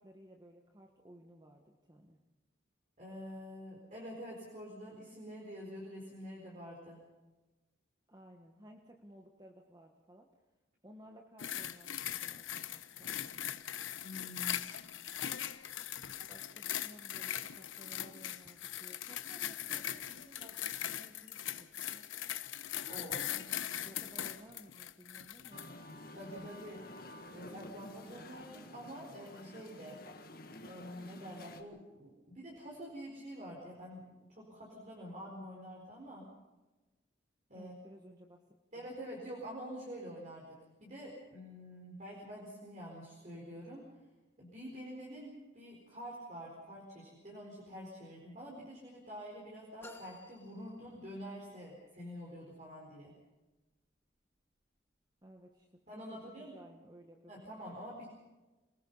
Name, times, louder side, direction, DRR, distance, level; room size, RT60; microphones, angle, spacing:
voice 1, 0.0-2.2 8.1-10.3 10.8-13.2 14.4-15.1 16.1-22.0 23.0-25.6 37.5-38.4 38.7-38.9 55.2-57.3, equal, 20° right, 2 dB, 1.4 m, -57 dB
voice 2, 3.0-7.0 14.0-14.8 22.9-23.4 26.1-30.0 30.6-36.3 37.5-37.7 38.7-43.9 44.4-53.1 55.9-56.5 57.3-58.1, equal, 40° right, -2 dB, 4.5 m, -47 dB
sound 1, 11.4-25.7 26.4-26.5, left 11 dB, 90° left, 1.0 m, -40 dB
Musical instrument, 25.5-31.6, left 1 dB, 50° left, 1.9 m, -51 dB
sound 2, 49.8-51.5, left 1 dB, 10° left, 1.8 m, -55 dB
27.0 x 19.5 x 5.6 m, 1.1 s
head